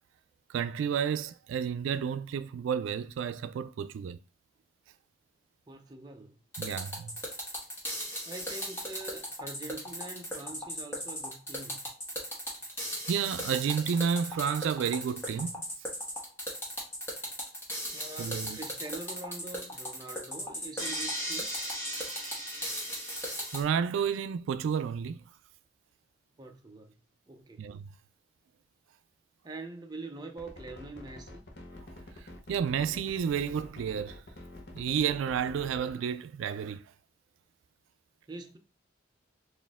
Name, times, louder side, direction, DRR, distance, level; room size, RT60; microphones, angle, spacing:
voice 1, 0.5-4.2 6.6-7.1 13.1-15.6 18.2-18.6 22.1-22.2 23.5-25.2 27.6-27.9 32.5-34.2 34.7-36.8, right 7 dB, 90° right, 0.3 m, -31 dB
voice 2, 5.7-6.4 8.2-11.9 17.9-21.5 26.4-27.0 27.3-27.7 29.4-31.4 38.3-38.6, right 2 dB, 20° right, 0.5 m, -44 dB
sound 1, 6.5-23.6, equal, 15° left, 1.1 m, -37 dB
sound 2, 30.4-35.9, left 1 dB, 55° left, 0.9 m, -47 dB
4.2 x 2.6 x 3.5 m
head